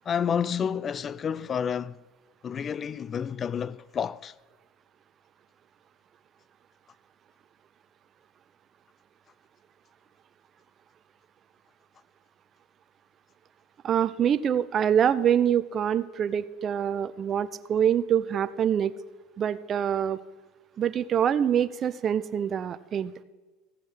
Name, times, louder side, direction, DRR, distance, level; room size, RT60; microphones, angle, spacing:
voice 1, 0.1-2.0 2.4-4.3, left 7 dB, 35° left, 0.4 m, -29 dB
voice 2, 13.8-18.9 19.4-20.2 20.8-23.1, right 9 dB, 40° right, 0.5 m, -25 dB
15.0 x 7.6 x 5.8 m
supercardioid pair, 105°, 0 cm